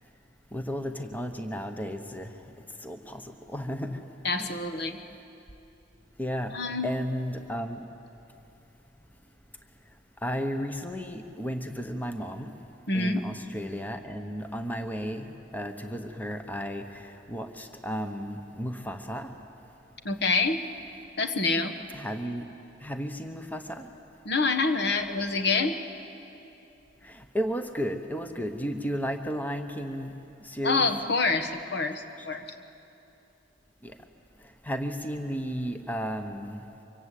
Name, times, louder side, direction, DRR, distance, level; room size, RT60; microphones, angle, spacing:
voice 1, 0.5-2.3 2.8-4.0 4.4-4.6 6.2-6.5 6.8-7.8 10.2-12.5 12.9-19.3 21.9-22.5 22.8-23.9 27.0-30.1 30.4-30.9 32.2-32.3 33.8-34.0 34.6-36.6, equal, 10° left, 6 dB, 1.0 m, -33 dB
voice 2, 4.2-5.0 6.5-6.9 12.9-13.2 20.0-20.6 21.2-21.7 24.2-25.7 30.6-32.5, left 3 dB, 60° left, 8 dB, 1.3 m, -26 dB
24.5 x 24.0 x 8.4 m, 2.8 s
head